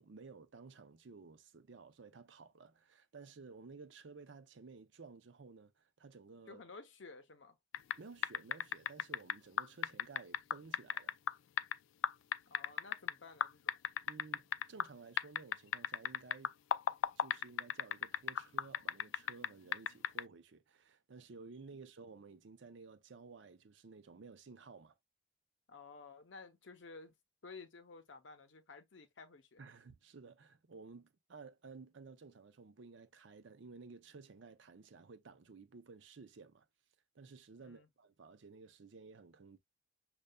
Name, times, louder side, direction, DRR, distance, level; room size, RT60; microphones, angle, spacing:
voice 1, 0.0-6.6 8.0-11.2 14.1-16.5 17.2-24.9 29.6-36.7 37.1-39.6, right 4 dB, 70° right, 0.6 m, -55 dB
voice 2, 6.5-7.6 12.5-13.8 25.7-27.1 27.4-29.6 37.6-37.9, left 4 dB, 70° left, 0.7 m, -54 dB
sound 1, 7.7-8.0 8.2-11.7 12.0-13.1 13.4-14.9 15.2-19.5 19.7-20.2, left 9 dB, 90° left, 0.3 m, -34 dB
6.5 x 2.3 x 2.2 m
head